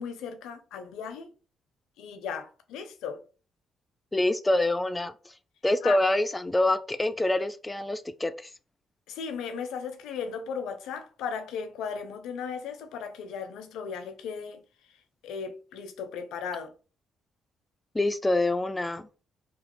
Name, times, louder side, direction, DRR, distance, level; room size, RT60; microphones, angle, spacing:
voice 1, 0.0-1.3 2.0-3.2 5.8-6.0 9.1-16.7, left 6 dB, 85° left, 0.5 m, -36 dB
voice 2, 4.1-5.3 5.6-8.5 17.9-19.1, left 1 dB, 15° left, 0.3 m, -26 dB
2.9 x 2.3 x 3.0 m
cardioid pair, 90°, 0 cm